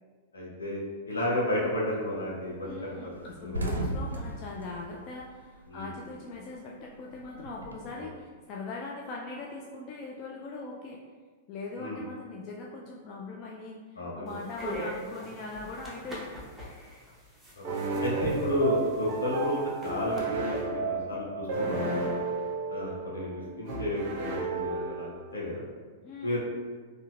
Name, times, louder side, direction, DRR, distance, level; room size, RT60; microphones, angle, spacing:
voice 1, 0.3-0.8 1.1-3.1 3.4-3.6 5.7-5.9 7.9-8.1 11.8-12.0 14.0-14.4 17.5-17.7 18.0-22.0 22.7-25.7 26.2-26.4, left 1 dB, 75° left, -5 dB, 1.0 m, -32 dB
sound 1, 1.4-1.8 2.2-2.3 2.6-2.7 3.0-6.0 6.3-8.0, right 1 dB, 75° right, 0.4 m, -36 dB
voice 2, 2.6-11.0 11.5-16.3 21.6-22.1 26.0-26.4, left 3 dB, 35° left, -1 dB, 0.3 m, -41 dB
sound 2, 14.3-20.2, equal, 5° right, 0.8 m, -41 dB
sound 3, 17.6-25.3, right 3 dB, 45° right, 0.8 m, -33 dB
4.1 x 2.7 x 2.4 m, 1.5 s
figure-of-eight pair, 95°, 0 cm